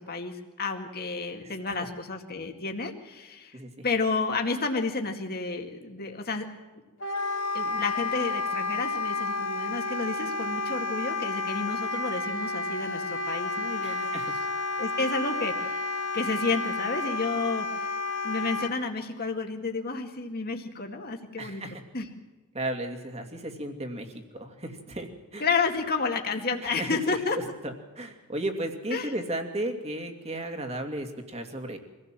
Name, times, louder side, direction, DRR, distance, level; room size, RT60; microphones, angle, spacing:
voice 1, 0.1-3.6 3.8-6.5 7.5-14.1 14.8-18.0 18.2-21.6 21.9-22.1 25.4-27.4 28.9-29.1, left 4 dB, 45° left, 3 dB, 2.2 m, -31 dB
voice 2, 1.4-1.7 3.5-3.8 13.8-14.3 21.4-21.8 22.5-24.1 24.4-25.4 26.6-31.8, right 1 dB, 30° right, 4 dB, 2.6 m, -35 dB
Wind instrument woodwind instrument, 7.0-18.7, left 3 dB, 65° left, 2.5 m, -31 dB
25.0 x 16.5 x 7.6 m, 1.2 s
head